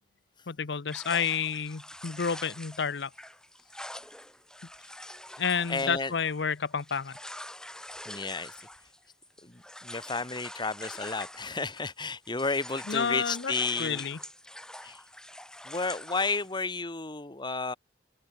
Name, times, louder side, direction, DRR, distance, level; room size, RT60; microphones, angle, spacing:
voice 1, 0.5-3.1 5.4-7.1 12.9-13.5 13.8-14.2, left 6 dB, 70° left, 0.7 m, -30 dB
sound 1, 0.9-12.0 12.3-16.6, left 1 dB, 5° left, 6.8 m, -45 dB
voice 2, 5.7-6.1 8.0-8.5 9.4-14.1 14.8-15.0 15.6-17.7, left 4 dB, 25° left, 1.6 m, -32 dB
open air
head